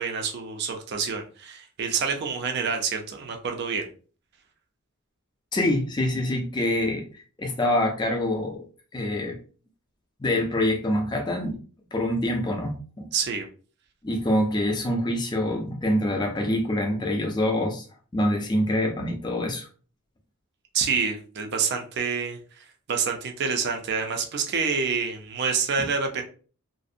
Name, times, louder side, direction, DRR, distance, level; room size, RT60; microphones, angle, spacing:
voice 1, 0.0-3.9 13.1-13.5 20.7-22.4 22.9-26.2, right 5 dB, 50° right, 4 dB, 0.4 m, -27 dB
voice 2, 5.5-7.0 7.4-8.7 8.9-9.4 10.2-11.6 11.9-13.1 14.0-17.9 18.1-19.7, left 1 dB, 20° left, 2 dB, 0.4 m, -25 dB
2.5 x 2.0 x 2.5 m, 0.39 s
head